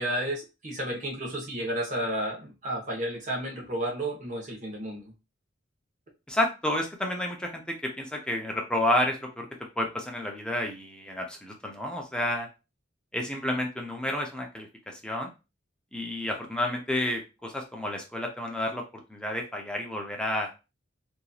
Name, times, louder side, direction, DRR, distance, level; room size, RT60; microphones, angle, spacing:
voice 1, 0.0-5.1, right 1 dB, 40° right, -1 dB, 1.1 m, -32 dB
voice 2, 6.3-9.5 9.8-12.5 13.1-15.3 15.9-18.8 19.1-20.5, left 1 dB, 5° left, 1 dB, 0.6 m, -30 dB
3.0 x 2.6 x 2.3 m, 0.29 s
head